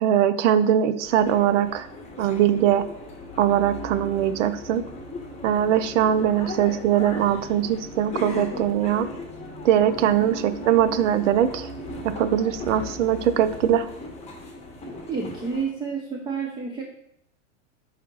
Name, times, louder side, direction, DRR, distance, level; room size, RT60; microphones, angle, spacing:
voice 1, 0.0-1.9 2.2-2.9 3.4-4.8 5.4-9.1 9.6-11.7 12.0-13.9, right 10 dB, 70° right, 12 dB, 0.5 m, -21 dB
sound 1, 1.0-15.6, left 2 dB, 15° left, 0.9 m, -38 dB
voice 2, 15.1-16.8, right 5 dB, 10° right, -1 dB, 0.4 m, -30 dB
4.8 x 3.4 x 3.1 m, 0.72 s
hypercardioid pair, 105°, 39 cm